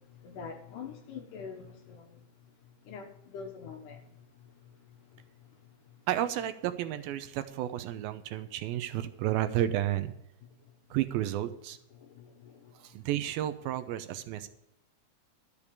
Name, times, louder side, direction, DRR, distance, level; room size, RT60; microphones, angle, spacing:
voice 1, 0.2-2.2 2.9-4.0 12.0-12.6, left 6 dB, 65° left, 2.5 m, -44 dB
voice 2, 6.1-10.1 10.9-11.8 12.8-14.5, right 12 dB, 80° right, 2.5 m, -32 dB
12.5 x 6.8 x 7.1 m
omnidirectional pair, 4.4 m